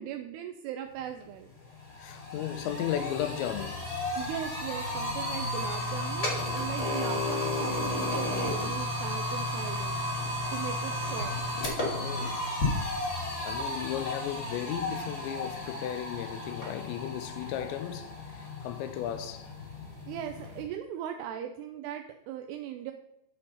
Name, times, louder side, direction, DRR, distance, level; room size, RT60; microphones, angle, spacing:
voice 1, 0.0-1.5 4.2-10.0 10.5-11.4 15.0-15.1 20.1-22.9, right 10 dB, 85° right, 2.3 m, -39 dB
sound 1, 1.2-1.3 1.6-20.6, left 1 dB, 35° left, 1.2 m, -33 dB
voice 2, 2.0-3.9 10.4-10.7 11.9-12.4 13.4-19.5, left 11 dB, 85° left, 2.9 m, -35 dB
10.5 x 4.4 x 5.5 m
omnidirectional pair, 5.3 m